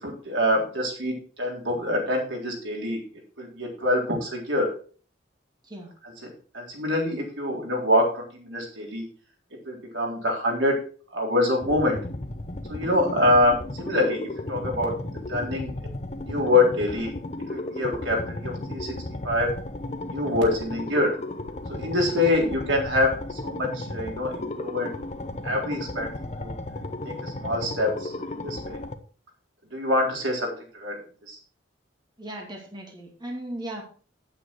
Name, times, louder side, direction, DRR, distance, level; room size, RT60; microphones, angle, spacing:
voice 1, 0.0-3.0 3.4-4.7 6.0-9.0 9.7-10.7 11.1-12.0 12.7-15.7 16.2-17.1 17.5-19.0 19.2-19.5 20.0-21.1 21.7-25.0 25.4-26.1 26.4-26.5 27.0-28.8 29.7-31.0 31.3-31.4, left 1 dB, 85° right, 0 dB, 3.8 m, -25 dB
sound 1, 11.6-29.0, left 2 dB, 35° left, 0.9 m, -34 dB
voice 2, 32.2-33.8, right 1 dB, 25° right, 1 dB, 2.2 m, -37 dB
9.5 x 8.9 x 4.6 m, 0.40 s
head